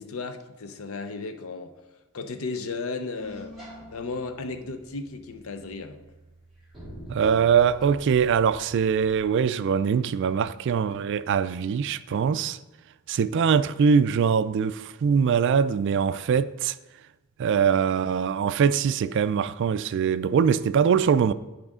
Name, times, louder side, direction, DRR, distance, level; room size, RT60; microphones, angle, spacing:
voice 1, 0.0-3.5 3.9-6.0, left 3 dB, 70° left, 0.7 m, -35 dB
sound 1, 3.1-9.3, equal, ahead, 3.0 m, -46 dB
voice 2, 7.1-12.6 13.1-16.8 17.4-21.3, right 7 dB, 55° right, 0.3 m, -22 dB
10.5 x 5.0 x 3.6 m
head